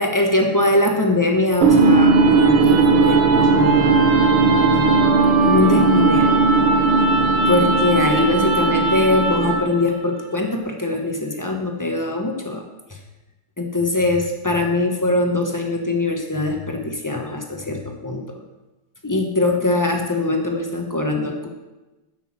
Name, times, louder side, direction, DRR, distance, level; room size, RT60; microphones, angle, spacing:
voice 1, 0.0-4.1 4.4-5.0 5.4-6.4 7.5-12.6 13.6-18.2 19.0-21.5, left 2 dB, 20° left, 2 dB, 0.5 m, -22 dB
sound 1, 1.6-9.8, right 3 dB, 80° right, 2.1 m, -16 dB
10.0 x 6.2 x 7.5 m, 1.1 s
omnidirectional pair, 2.4 m